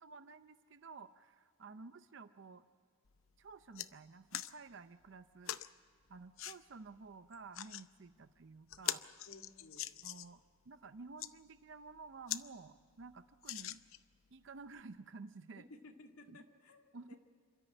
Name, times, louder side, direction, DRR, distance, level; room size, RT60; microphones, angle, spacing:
voice 1, 0.0-2.7 3.4-5.6 6.1-9.0 10.0-13.9 14.3-15.7 16.3-16.4 16.9-17.2, right 4 dB, 55° right, 11 dB, 0.5 m, -53 dB
sound 1, 3.1-3.2 3.5-3.9 4.3-4.5 5.4-5.7 6.4-6.6 7.3-7.8 8.3-8.4 8.7-10.4 11.0-11.3 11.9-12.0 12.3-12.4 12.8-12.9 13.4-14.1 14.8-14.9, left 12 dB, 70° left, 0.7 m, -42 dB
voice 2, 9.3-9.9 15.6-17.2, left 2 dB, 85° left, 3 dB, 2.1 m, -57 dB
27.5 x 13.5 x 9.0 m, 2.1 s
head